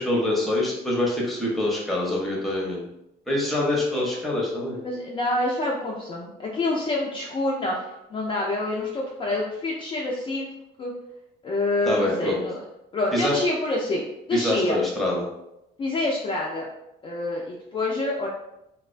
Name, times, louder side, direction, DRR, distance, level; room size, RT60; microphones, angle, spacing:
voice 1, 0.0-2.8 3.3-4.8 11.9-12.4 13.1-13.4 14.3-15.3, left 1 dB, ahead, -3 dB, 0.7 m, -25 dB
voice 2, 3.6-4.0 4.7-7.7 8.1-10.5 10.8-10.9 11.4-12.6 12.9-14.8 15.8-16.7 17.0-18.3, left 2 dB, 30° left, -3 dB, 0.4 m, -27 dB
2.3 x 2.2 x 2.4 m, 0.87 s
cardioid pair, 110°, 17 cm